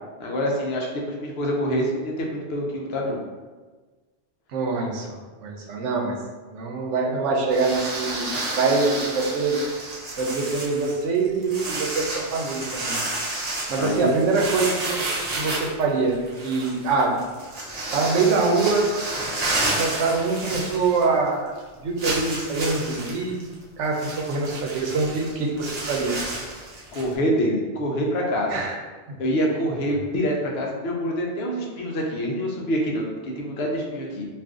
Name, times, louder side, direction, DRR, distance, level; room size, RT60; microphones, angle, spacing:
voice 1, 0.2-3.2 13.8-14.2 26.9-28.7 29.2-34.3, equal, 65° left, -1 dB, 0.8 m, -26 dB
voice 2, 4.5-6.2 6.4-9.6 10.2-13.0 13.7-17.2 17.9-18.9 19.6-21.6 21.8-23.4 23.8-26.2 28.5-28.8 29.1-29.2 29.9-30.0, right 4 dB, 85° right, 0 dB, 1.0 m, -24 dB
sound 1, 7.5-21.3 21.6-21.7 22.0-27.1, right 2 dB, 40° right, 0.7 m, -31 dB
2.5 x 2.5 x 3.5 m, 1.3 s
omnidirectional pair, 1.2 m